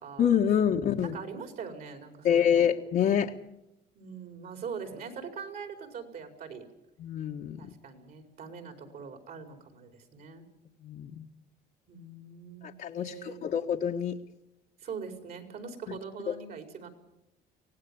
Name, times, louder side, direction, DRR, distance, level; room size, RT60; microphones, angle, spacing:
voice 1, 0.2-1.2 2.2-3.3 7.0-7.7 10.8-11.2 12.6-14.1 16.3-16.4, left 8 dB, 60° left, -1 dB, 1.6 m, -26 dB
voice 2, 1.0-2.7 4.0-6.7 7.6-10.4 11.9-13.5 14.8-16.9, right 6 dB, 60° right, 6 dB, 5.1 m, -42 dB
24.5 x 18.0 x 7.2 m, 0.85 s
cardioid pair, 110°, 17 cm